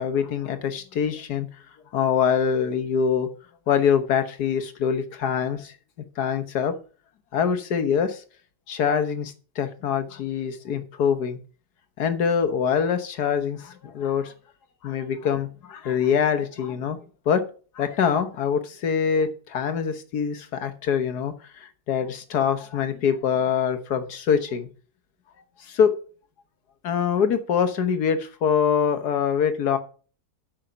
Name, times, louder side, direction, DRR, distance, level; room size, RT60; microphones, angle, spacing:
voice 1, 0.0-1.5 1.9-3.3 3.7-5.7 6.2-6.7 7.3-8.2 8.7-11.4 12.0-14.3 14.8-17.0 17.3-17.4 17.8-24.7 25.6-25.9 26.8-29.8, left 7 dB, 80° left, 9 dB, 1.8 m, -24 dB
9.0 x 6.6 x 5.7 m, 0.38 s
omnidirectional pair, 1.7 m